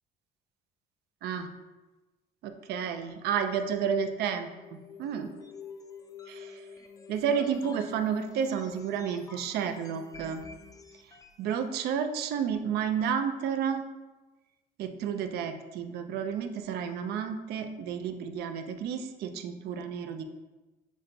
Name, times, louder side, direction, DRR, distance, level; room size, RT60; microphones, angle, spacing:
voice 1, 2.4-4.5 5.0-5.3 6.3-6.6 7.1-10.4 11.4-13.8 14.8-20.2, right 7 dB, 75° right, 7 dB, 0.5 m, -31 dB
sound 1, 4.3-11.5, left 5 dB, 20° left, 0.4 m, -49 dB
6.1 x 2.2 x 3.8 m, 1.2 s
cardioid pair, 110°, 17 cm